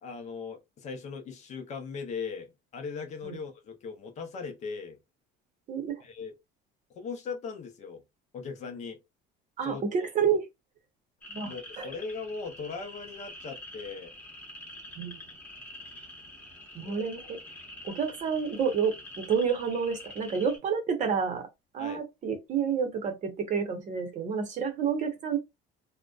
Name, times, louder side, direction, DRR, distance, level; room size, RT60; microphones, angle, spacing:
voice 1, 0.0-5.0 6.0-6.3 6.9-8.0 8.3-9.0 9.6-10.1 11.4-14.1 16.7-17.1 21.8-22.0, left 5 dB, 40° left, 0.6 m, -39 dB
voice 2, 5.7-6.0 9.6-10.5 11.3-11.9 15.0-15.1 16.7-17.4 17.8-21.5 21.7-25.4, right 6 dB, 40° right, 0.7 m, -29 dB
sound 1, 11.2-20.6, left 1 dB, 10° left, 0.9 m, -46 dB
2.6 x 2.1 x 2.3 m
cardioid pair, 155°, 19 cm